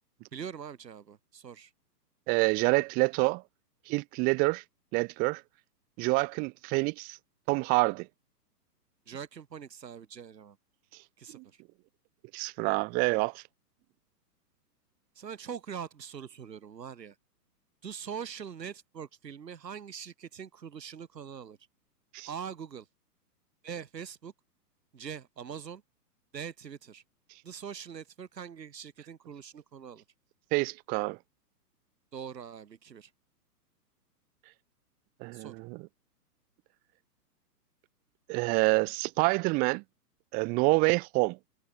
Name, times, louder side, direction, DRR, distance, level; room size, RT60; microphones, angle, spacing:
voice 1, 0.3-1.7 9.1-10.6 11.2-11.6 15.1-17.1 17.8-21.6 22.3-22.9 23.6-24.3 24.9-25.8 26.3-27.0 27.4-30.0 32.1-33.1 35.3-35.5, right 7 dB, 85° right, 4.9 m, -42 dB
voice 2, 2.3-3.4 3.9-4.6 4.9-5.4 6.0-7.2 7.5-8.1 11.3-11.4 12.3-13.4 22.1-22.3 30.5-31.2 35.2-35.8 38.3-39.8 40.3-41.4, right 27 dB, 20° right, 1.0 m, -27 dB
hypercardioid pair, 150°, 49 cm